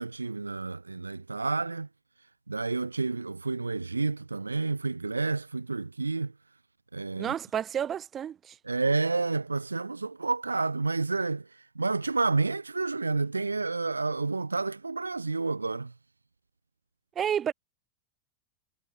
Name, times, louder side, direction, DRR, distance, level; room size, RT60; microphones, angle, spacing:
voice 1, 0.0-1.9 2.5-6.3 6.9-7.3 8.6-15.9, right 3 dB, 80° right, 2.2 m, -30 dB
voice 2, 7.2-8.6 17.2-17.5, right 9 dB, 25° right, 7.4 m, -30 dB
figure-of-eight pair, 90°, 0 cm